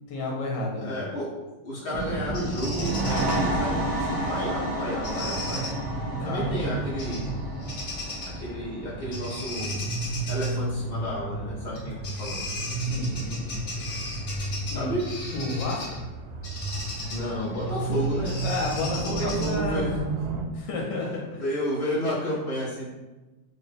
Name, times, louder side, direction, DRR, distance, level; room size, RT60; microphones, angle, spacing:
voice 1, 0.1-0.9 6.2-6.9 12.7-13.4 14.4-15.0 15.3-16.0 18.4-19.9 20.5-21.4, left 2 dB, 70° left, -1 dB, 1.3 m, -31 dB
voice 2, 0.8-1.3 1.6-5.7 6.2-7.3 8.4-9.8 10.3-11.9 12.2-12.4 14.7-15.0 17.1-18.3 19.1-20.2 21.4-22.9, equal, 85° left, -8 dB, 0.5 m, -31 dB
sound 1, 1.9-20.4, right 3 dB, 75° right, 1.1 m, -33 dB
Bird vocalization bird call bird song, 2.3-3.4 5.0-5.7 7.0-7.3 7.6-8.4 9.1-10.5 11.7-11.8 12.0-16.0 16.4-19.7, left 2 dB, 50° left, 0.9 m, -37 dB
sound 2, 2.7-10.1, right 1 dB, 35° right, 0.7 m, -32 dB
3.8 x 2.2 x 4.0 m, 1.1 s
omnidirectional pair, 2.2 m